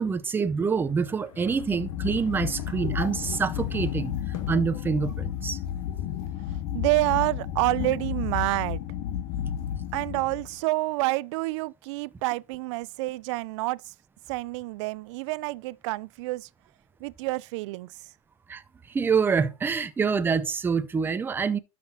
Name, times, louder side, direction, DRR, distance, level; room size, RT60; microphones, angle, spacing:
voice 1, 0.0-5.6 18.5-18.6 18.9-21.6, right 5 dB, 10° right, 0.6 m, -26 dB
sound 1, 0.7-4.8, left 8 dB, 75° left, 2.6 m, -46 dB
sound 2, 1.5-10.6, left 10 dB, 50° left, 0.9 m, -32 dB
voice 2, 6.0-8.8 9.9-13.9 14.3-16.5 17.0-18.1, right 21 dB, 60° right, 0.4 m, -28 dB
12.0 x 5.9 x 2.8 m
supercardioid pair, 130°, 17 cm